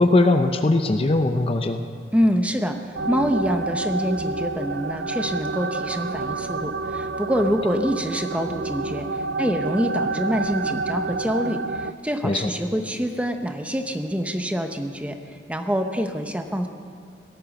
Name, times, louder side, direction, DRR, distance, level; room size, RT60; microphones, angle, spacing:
voice 1, 0.0-1.8 12.2-12.5, left 2 dB, 30° left, 7 dB, 0.6 m, -20 dB
voice 2, 2.1-16.7, equal, 5° right, 6 dB, 0.8 m, -26 dB
Choir Of Weeping Angels Loop, 2.9-11.9, right 3 dB, 65° right, 0.4 m, -29 dB
17.5 x 13.0 x 6.0 m, 2.3 s
head